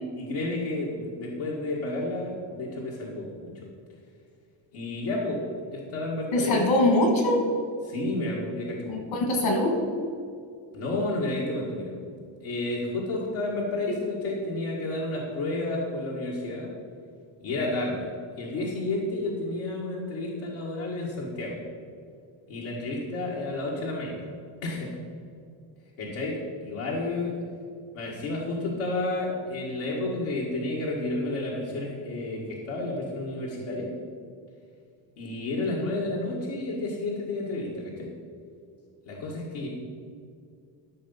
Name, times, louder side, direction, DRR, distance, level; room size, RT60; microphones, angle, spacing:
voice 1, 0.0-3.6 4.7-5.4 5.7-6.6 7.9-8.9 10.7-11.9 12.4-16.7 17.4-18.1 18.4-21.6 22.5-24.2 24.6-24.9 26.0-27.3 27.9-33.9 35.2-38.1 39.1-39.7, left 2 dB, 90° left, -4 dB, 1.9 m, -31 dB
voice 2, 6.3-7.4 8.9-9.8 13.9-14.0, left 1 dB, 70° left, 2 dB, 2.6 m, -23 dB
13.5 x 6.0 x 5.6 m, 2.3 s
cardioid pair, 110°, 48 cm